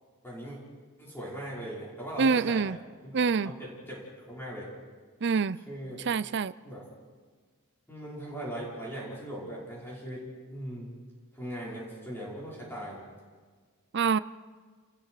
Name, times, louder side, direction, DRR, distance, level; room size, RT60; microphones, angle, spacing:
voice 1, 0.2-0.6 1.0-2.7 3.0-4.7 5.7-6.0 6.6-6.8 7.9-10.9 11.3-13.0, right 1 dB, 10° left, -6 dB, 5.5 m, -39 dB
voice 2, 2.2-2.8 3.1-3.5 5.2-5.6 6.1-6.5 13.9-14.2, right 5 dB, 50° right, 15 dB, 0.5 m, -25 dB
29.5 x 20.5 x 4.9 m, 1.5 s
head